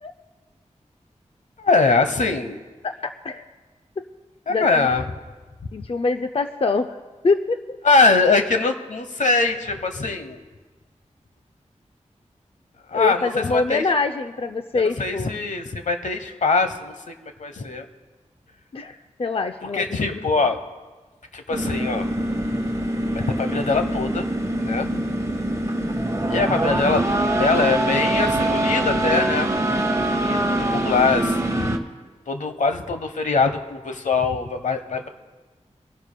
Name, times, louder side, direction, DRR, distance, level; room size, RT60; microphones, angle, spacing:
voice 1, 1.6-2.6 4.5-5.0 7.8-10.4 12.9-13.8 14.7-16.9 17.2-17.9 19.7-20.6 21.3-22.1 23.1-24.3 24.6-24.9 26.3-27.1 27.3-29.5 30.1-31.8 32.3-35.1, left 4 dB, 80° left, 7 dB, 0.9 m, -22 dB
voice 2, 2.8-3.5 4.0-4.1 4.5-4.9 5.7-7.0 7.2-7.8 12.9-15.3 18.7-19.8 20.1-20.2 24.8-25.0, left 3 dB, 50° left, 8 dB, 0.5 m, -25 dB
sound 1, 21.5-31.8, right 1 dB, 25° right, 1.1 m, -23 dB
24.0 x 12.0 x 2.2 m, 1.3 s
wide cardioid pair, 70°, 13 cm